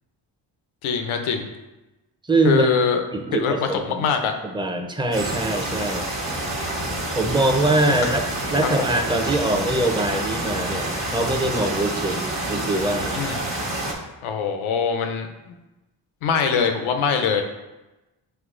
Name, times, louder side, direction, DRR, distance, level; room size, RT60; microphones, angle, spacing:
voice 1, 0.8-1.5 2.4-3.0 3.3-4.3 8.0-8.1 8.8-8.9 13.1-13.4 14.2-15.5 16.2-17.4, left 6 dB, 85° left, 5 dB, 0.6 m, -23 dB
voice 2, 2.2-2.7 3.1-4.1 4.4-6.1 7.2-8.2 8.5-13.3, right 2 dB, 10° right, 4 dB, 0.6 m, -23 dB
sound 1, 5.1-13.9, right 1 dB, 65° right, 1.2 m, -28 dB
5.7 x 2.9 x 2.5 m, 1.0 s
supercardioid pair, 45°, 48 cm